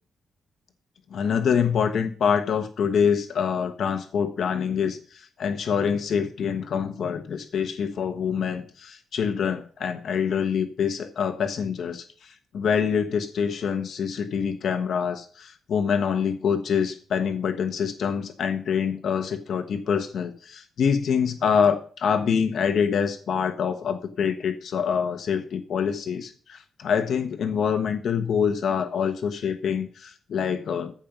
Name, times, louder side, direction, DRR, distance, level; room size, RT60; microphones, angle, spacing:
voice 1, 1.1-30.9, left 7 dB, 60° left, 7 dB, 1.1 m, -25 dB
14.5 x 5.2 x 6.0 m, 0.42 s
cardioid pair, 125°, 0 cm